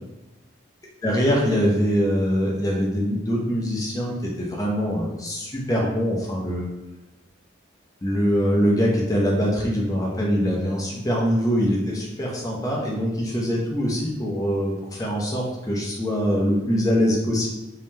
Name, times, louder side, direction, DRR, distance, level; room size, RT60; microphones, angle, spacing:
voice 1, 1.0-6.7 8.0-17.5, equal, 20° left, -2 dB, 0.5 m, -23 dB
2.7 x 2.1 x 3.1 m, 0.96 s
head